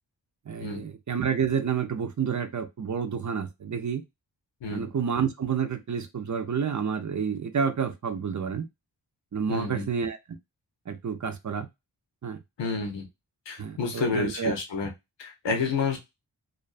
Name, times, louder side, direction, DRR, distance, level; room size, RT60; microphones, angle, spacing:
voice 1, 0.5-4.0 4.7-8.7 9.3-10.2 10.9-11.7 12.2-12.4 13.6-14.6, right 7 dB, 45° right, 8 dB, 0.6 m, -29 dB
voice 2, 9.5-9.9 12.6-13.1 13.5-14.9 15.2-16.0, left 4 dB, 80° left, 3 dB, 0.8 m, -29 dB
2.4 x 2.3 x 2.4 m, 0.21 s
cardioid pair, 45°, 44 cm